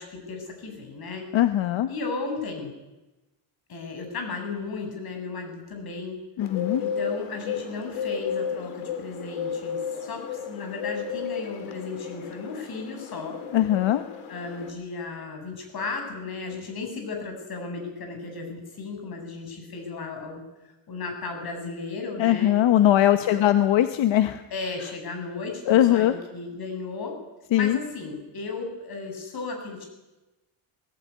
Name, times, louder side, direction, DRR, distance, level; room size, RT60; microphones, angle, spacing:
voice 1, 0.0-1.3 1.9-2.7 3.7-6.2 6.8-13.4 14.3-20.4 20.9-22.6 23.2-23.4 24.5-27.2 27.5-29.9, left 4 dB, 50° left, 4 dB, 7.4 m, -35 dB
voice 2, 1.3-1.9 6.4-6.8 13.5-14.0 22.2-24.4 25.7-26.1 27.5-27.8, left 12 dB, 65° left, 9 dB, 1.3 m, -20 dB
Bird, 6.4-14.7, left 7 dB, 85° left, 3.8 m, -33 dB
20.5 x 17.5 x 9.6 m, 1.0 s
cardioid pair, 125°, 48 cm